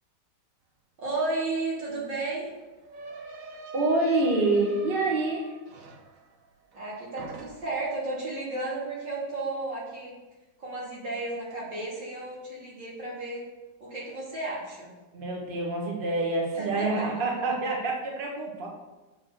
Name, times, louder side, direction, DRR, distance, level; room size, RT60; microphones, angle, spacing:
voice 1, 1.0-2.5 6.7-10.1 10.6-13.4 13.8-14.9 16.5-17.2, right 2 dB, 85° right, -6 dB, 3.5 m, -33 dB
sound 1, 1.3-1.4 1.6-6.9 7.2-7.9, right 2 dB, 55° right, 1.2 m, -45 dB
voice 2, 3.7-5.5 15.1-18.7, right 2 dB, 30° right, -2 dB, 1.6 m, -27 dB
6.7 x 6.0 x 6.4 m, 1.1 s
omnidirectional pair, 1.9 m